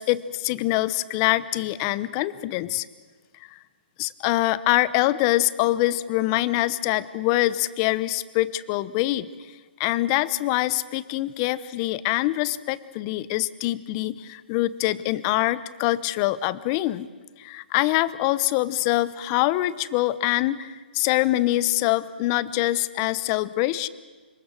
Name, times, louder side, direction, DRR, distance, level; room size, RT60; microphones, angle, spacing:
voice 1, 0.0-2.9 3.5-3.6 4.0-9.3 9.8-17.1 17.4-23.9, left 16 dB, 30° left, 18 dB, 0.8 m, -24 dB
26.5 x 22.5 x 6.4 m, 1.3 s
hypercardioid pair, 150°, 6 cm